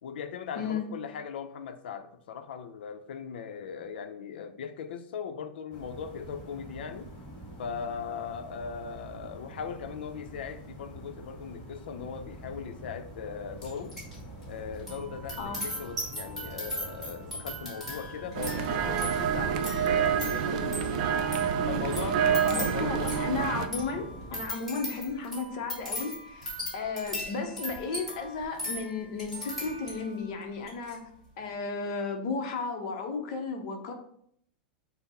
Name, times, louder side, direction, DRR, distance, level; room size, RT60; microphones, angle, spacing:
voice 1, 0.0-7.1 7.6-14.0 14.5-21.3 21.7-23.0, left 6 dB, 85° left, 0.5 m, -39 dB
voice 2, 0.6-0.9 15.4-15.7 22.5-31.0 31.4-33.9, left 4 dB, 40° left, 0.7 m, -34 dB
sound 1, 5.7-24.5, right 1 dB, 25° left, 1.4 m, -46 dB
sound 2, 13.6-14.2 14.4-30.2 30.6-30.9, equal, 5° right, 1.4 m, -39 dB
sound 3, 18.3-23.7, right 8 dB, 45° right, 0.4 m, -28 dB
5.7 x 2.0 x 4.2 m
supercardioid pair, 180°, 5 cm